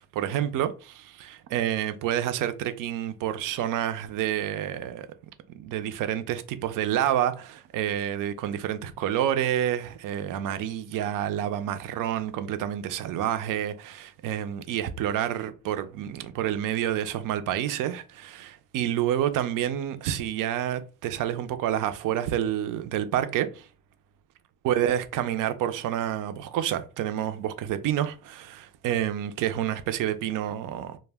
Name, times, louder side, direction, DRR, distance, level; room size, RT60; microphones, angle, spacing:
voice 1, 0.1-5.1 5.5-23.7 24.6-31.0, right 11 dB, 60° right, 0.5 m, -28 dB
2.1 x 2.1 x 3.3 m
cardioid pair, 130°, 36 cm